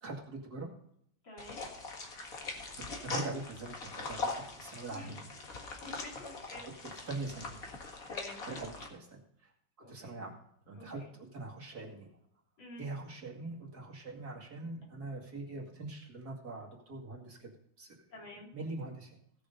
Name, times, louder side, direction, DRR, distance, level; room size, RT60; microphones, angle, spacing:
voice 1, 0.0-0.7 3.0-5.2 5.8-5.9 6.8-7.6 8.5-9.5 9.9-10.3 10.7-12.1 12.8-17.5 17.8-18.0 18.5-19.1, right 3 dB, 45° right, 0 dB, 2.6 m, -42 dB
voice 2, 1.2-1.6 4.6-5.2 5.8-6.9 8.1-8.4 9.8-10.1 10.7-11.1 12.6-12.8 18.1-18.5, left 2 dB, 65° left, -2 dB, 4.2 m, -49 dB
sound 1, 1.4-8.9, left 3 dB, 40° left, 2.1 m, -42 dB
17.0 x 6.8 x 5.2 m, 0.70 s
omnidirectional pair, 2.3 m